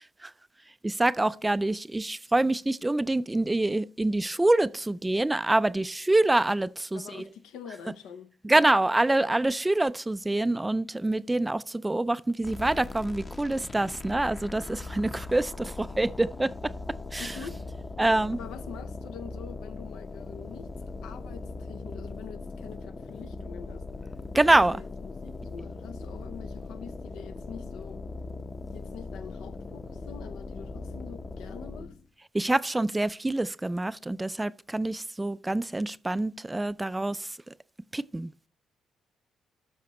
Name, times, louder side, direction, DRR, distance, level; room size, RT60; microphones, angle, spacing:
voice 1, 0.8-7.2 8.4-16.7 17.1-17.3 18.0-18.4 24.3-24.7 32.3-37.3 37.9-38.3, right 2 dB, 15° right, 0.3 m, -26 dB
voice 2, 6.9-8.7 17.2-17.6 18.3-23.9 24.5-28.0 28.7-31.9, left 7 dB, 90° left, 0.7 m, -45 dB
sound 1, 12.4-32.1, left 3 dB, 25° left, 0.7 m, -40 dB
13.0 x 5.7 x 3.0 m
cardioid pair, 90°, 0 cm